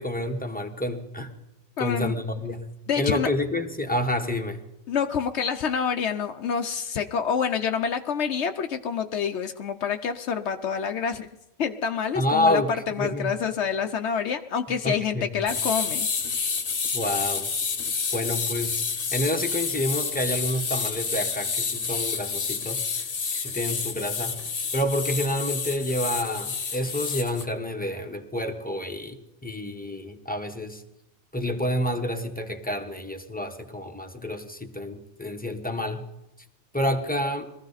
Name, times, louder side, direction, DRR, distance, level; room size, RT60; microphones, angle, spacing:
voice 1, 0.0-1.3 1.8-2.7 3.0-4.6 12.1-13.4 14.8-15.5 16.9-17.5 18.1-18.7 19.1-24.4 24.7-30.8 31.3-36.1 36.7-37.4, left 1 dB, 10° left, 4 dB, 1.2 m, -29 dB
voice 2, 1.8-2.1 2.9-3.3 4.9-11.3 11.6-12.6 12.9-16.1 16.3-16.4, left 7 dB, 75° left, 7 dB, 1.0 m, -27 dB
sound 1, 15.5-27.5, left 5 dB, 55° left, 1.2 m, -29 dB
21.5 x 14.5 x 4.1 m, 0.94 s
omnidirectional pair, 1.2 m